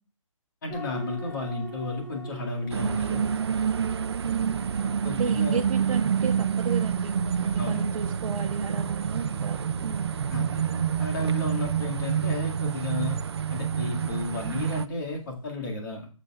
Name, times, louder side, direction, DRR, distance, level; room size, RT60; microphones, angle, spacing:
voice 1, 0.6-3.3 4.8-5.6 7.6-7.8 10.3-10.7 11.0-13.2 13.5-16.1, left 2 dB, 40° left, -1 dB, 2.0 m, -33 dB
sound 1, 0.7-15.5, right 3 dB, 5° left, 4.9 m, -48 dB
sound 2, 2.7-14.9, right 7 dB, 50° right, 0.4 m, -28 dB
voice 2, 4.2-4.6 5.0-10.1, right 5 dB, 75° right, 2 dB, 0.9 m, -33 dB
14.5 x 7.0 x 2.4 m, 0.37 s
hypercardioid pair, 175°, 18 cm